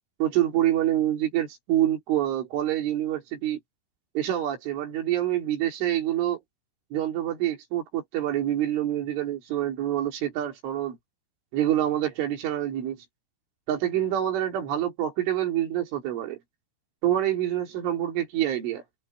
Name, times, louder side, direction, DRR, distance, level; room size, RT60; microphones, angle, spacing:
voice 1, 0.2-3.6 4.2-6.4 6.9-11.0 11.5-13.0 13.7-16.4 17.0-18.8, right 12 dB, 70° right, 5.8 m, -26 dB
open air
omnidirectional pair, 5.8 m